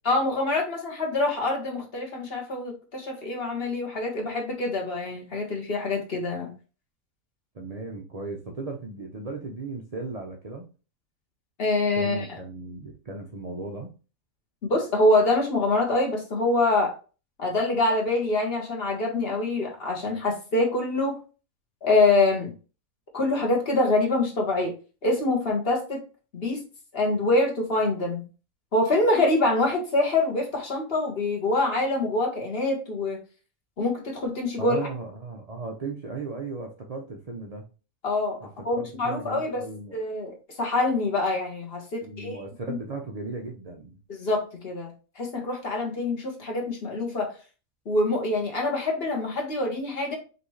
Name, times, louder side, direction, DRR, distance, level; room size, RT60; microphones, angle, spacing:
voice 1, 0.0-6.5 11.6-12.3 14.6-16.9 17.4-21.2 21.8-22.5 23.1-24.7 25.0-26.0 26.3-26.6 26.9-28.2 28.7-33.2 33.8-34.8 38.0-38.4 38.6-39.6 39.9-42.8 44.1-44.9 45.2-47.3 47.8-50.2, left 2 dB, 45° left, 0 dB, 1.3 m, -25 dB
voice 2, 7.5-10.6 12.0-13.9 34.6-37.6 38.4-40.0 42.0-44.0, right 3 dB, 60° right, 2 dB, 0.4 m, -36 dB
5.1 x 2.9 x 3.1 m, 0.34 s
omnidirectional pair, 1.5 m